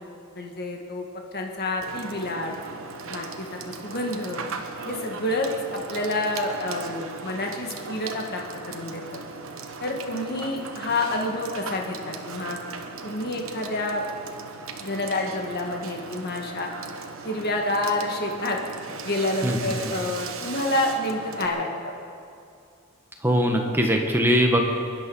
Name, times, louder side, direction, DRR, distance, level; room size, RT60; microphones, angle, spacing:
voice 1, 0.4-1.1 1.3-2.5 3.1-4.4 4.9-9.0 9.8-12.6 13.0-14.0 14.8-16.7 17.2-18.6 19.0-21.9, left 2 dB, 50° left, 1 dB, 1.8 m, -28 dB
Water / Water tap faucet / Sink (filling or washing), 1.8-21.5, right 4 dB, 65° right, 1.2 m, -38 dB
voice 2, 19.4-19.7 23.2-24.6, equal, 10° right, 1 dB, 1.5 m, -21 dB
23.0 x 11.0 x 5.6 m, 2.4 s
head